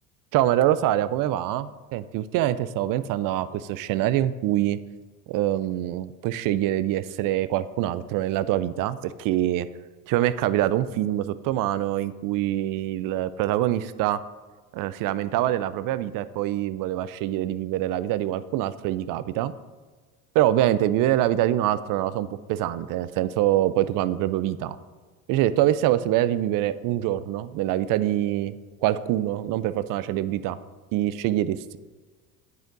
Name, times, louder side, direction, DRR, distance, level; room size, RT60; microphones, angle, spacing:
voice 1, 0.3-4.8 5.3-9.7 10.1-14.2 14.7-19.5 20.3-24.8 25.3-28.5 28.8-30.6 30.9-31.8, right 13 dB, 50° right, 15 dB, 0.5 m, -25 dB
9.2 x 5.5 x 3.9 m, 1.4 s
hypercardioid pair, 80°, 42 cm